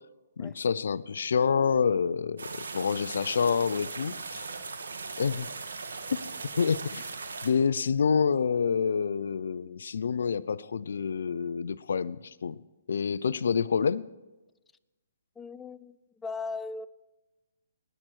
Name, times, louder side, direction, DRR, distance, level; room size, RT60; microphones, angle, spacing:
voice 1, 0.4-4.4 5.2-5.5 6.6-7.0 7.4-12.6 12.9-14.0, left 6 dB, 70° left, 0.5 m, -27 dB
sound 1, 2.4-7.5, right 4 dB, 85° right, 1.8 m, -39 dB
voice 2, 15.4-16.9, left 4 dB, 10° left, 0.4 m, -38 dB
19.5 x 9.1 x 4.6 m
hypercardioid pair, 150°, 0 cm